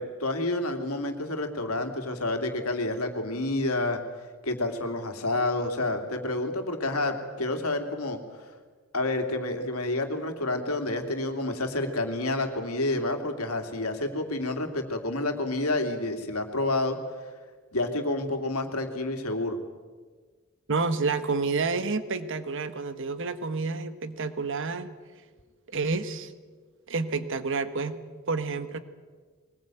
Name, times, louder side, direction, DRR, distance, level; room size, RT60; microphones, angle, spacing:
voice 1, 0.0-4.0 4.4-8.2 8.9-17.0 17.7-19.6, left 2 dB, 85° left, 5 dB, 2.8 m, -29 dB
voice 2, 20.7-24.9 25.7-26.3 26.9-28.0 28.3-28.8, right 4 dB, 60° right, 11 dB, 1.5 m, -29 dB
22.5 x 20.5 x 9.1 m, 1.5 s
head